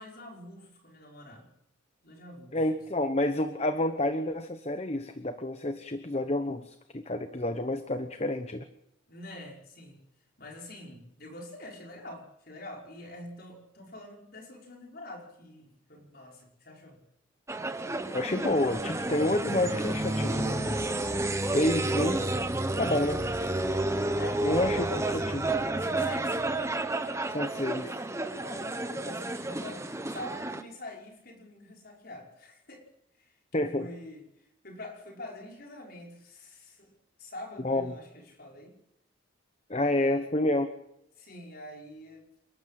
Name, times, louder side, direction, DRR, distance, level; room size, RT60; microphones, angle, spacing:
voice 1, 0.0-1.5 2.0-2.6 9.1-10.0 10.4-17.0 24.2-24.5 25.8-26.4 28.3-32.8 33.2-36.9 37.2-38.8 39.8-40.3 41.2-42.3, left 1 dB, 45° left, 1 dB, 5.6 m, -46 dB
voice 2, 2.5-8.6 18.1-20.8 21.5-22.2 22.8-23.2 24.4-25.5 27.3-28.0 33.5-33.9 37.6-37.9 39.7-40.7, left 1 dB, 30° left, 9 dB, 1.0 m, -29 dB
sound 1, 17.5-30.6, right 2 dB, 15° right, 1.1 m, -30 dB
29.0 x 12.5 x 7.6 m, 0.82 s
head